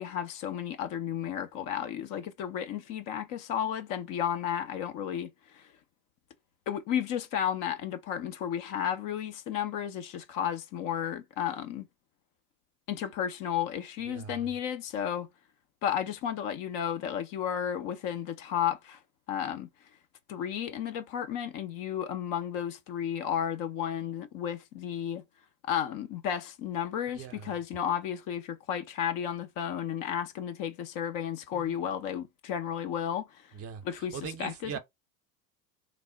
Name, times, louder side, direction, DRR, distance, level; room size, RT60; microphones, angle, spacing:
voice 1, 0.0-5.7 6.7-11.9 12.9-15.3 15.8-19.0 19.3-19.7 20.3-25.2 25.6-33.5 33.9-34.8, left 9 dB, 45° left, 0.6 m, -33 dB
voice 2, 14.0-14.5 27.1-27.6 31.5-31.9 33.5-34.8, right 7 dB, 30° right, 0.7 m, -41 dB
3.2 x 2.1 x 3.8 m
hypercardioid pair, 85°, 47 cm